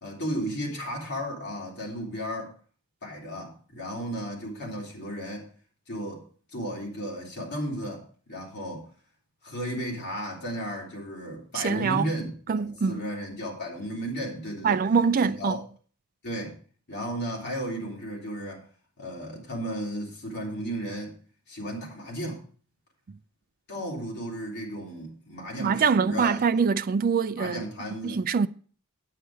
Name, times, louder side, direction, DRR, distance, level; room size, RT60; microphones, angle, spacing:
voice 1, 0.0-2.5 3.0-5.5 5.9-6.2 6.5-8.9 9.4-14.8 15.2-15.6 16.2-16.5 16.9-18.6 19.0-21.2 21.5-22.4 23.7-26.4 27.3-28.2, equal, 50° left, 3.3 m, -34 dB
voice 2, 11.5-12.1 12.5-13.0 14.6-15.6 25.6-27.6 28.0-28.5, right 5 dB, 40° right, 0.4 m, -24 dB
9.2 x 8.7 x 4.7 m
head